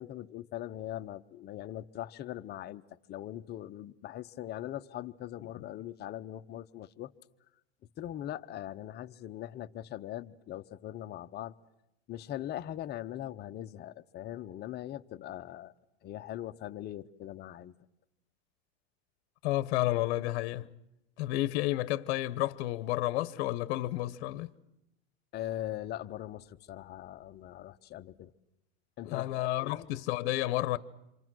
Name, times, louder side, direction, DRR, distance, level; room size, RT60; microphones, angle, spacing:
voice 1, 0.0-2.8 3.1-7.1 8.0-11.5 12.1-15.7 16.0-17.7 25.3-28.3 29.0-29.9, left 12 dB, 30° left, 0.8 m, -41 dB
voice 2, 19.4-20.7 21.2-24.5 29.1-30.8, left 16 dB, 65° left, 0.9 m, -31 dB
28.0 x 25.0 x 6.2 m
supercardioid pair, 135°, 33 cm